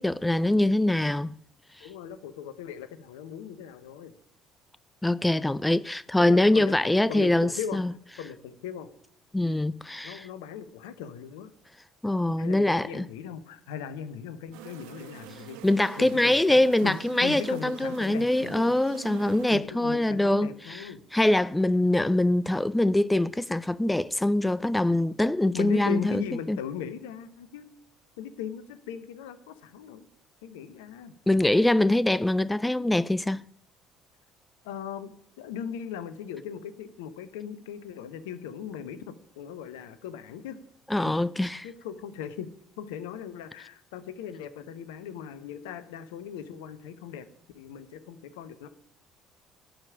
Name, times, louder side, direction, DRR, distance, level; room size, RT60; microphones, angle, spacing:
voice 1, 0.0-1.4 1.8-1.9 5.0-7.9 9.3-10.3 12.0-13.0 15.6-20.8 21.1-26.6 31.3-33.4 40.9-41.7, left 1 dB, 10° left, 0.4 m, -24 dB
voice 2, 1.8-4.1 6.2-7.8 8.2-8.9 10.0-11.5 12.4-15.6 16.0-18.7 19.5-21.0 25.5-27.7 28.2-30.1 30.4-31.1 34.6-40.6 41.0-41.2 41.6-42.5 42.8-47.2 47.5-48.7, left 8 dB, 75° left, 0.9 m, -38 dB
sound 1, 14.5-19.6, right 12 dB, 70° right, 1.1 m, -44 dB
12.0 x 5.2 x 8.8 m
hypercardioid pair, 55°, 0 cm